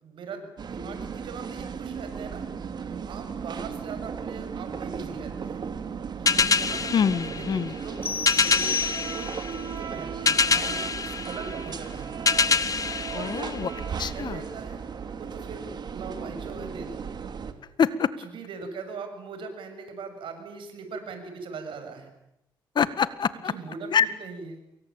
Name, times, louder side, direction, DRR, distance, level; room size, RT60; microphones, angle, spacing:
voice 1, 0.0-2.5 2.9-5.6 6.2-12.4 13.1-14.8 15.2-17.0 18.2-22.1 23.4-24.6, right 4 dB, 80° right, 7 dB, 6.9 m, -40 dB
sound 1, 0.6-17.5, right 6 dB, 55° right, 3.0 m, -36 dB
sound 2, 6.3-14.1, left 5 dB, 45° left, 1.7 m, -26 dB
voice 2, 6.9-7.7 13.1-13.7 14.0-14.4 17.8-18.1 22.8-23.5 23.9-24.1, left 7 dB, 60° left, 14 dB, 1.8 m, -25 dB
sound 3, 8.0-9.5, left 5 dB, 25° left, 1.6 m, -31 dB
28.0 x 23.5 x 8.9 m, 0.84 s
cardioid pair, 85°, 8 cm